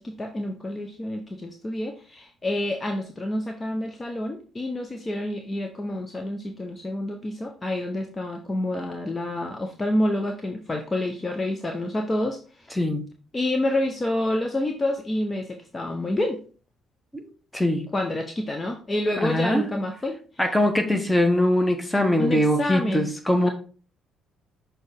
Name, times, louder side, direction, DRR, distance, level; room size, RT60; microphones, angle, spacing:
voice 1, 0.0-12.7 13.3-16.4 17.9-20.2 22.2-23.1, left 1 dB, 25° left, 4 dB, 0.8 m, -28 dB
voice 2, 17.5-17.8 19.2-19.7 20.4-23.5, left 1 dB, 10° left, 5 dB, 1.2 m, -22 dB
6.4 x 3.1 x 4.8 m, 0.38 s
figure-of-eight pair, 45°, 0 cm